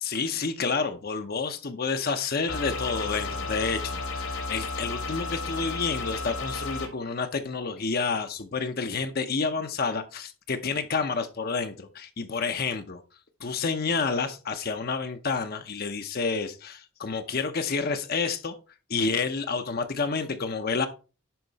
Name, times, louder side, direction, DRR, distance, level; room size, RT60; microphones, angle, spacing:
voice 1, 0.0-13.0 13.4-18.5 18.9-20.9, left 4 dB, 45° left, 0.7 m, -29 dB
sound 1, 2.5-6.9, left 3 dB, 80° left, 2.2 m, -33 dB
10.5 x 4.3 x 4.0 m
head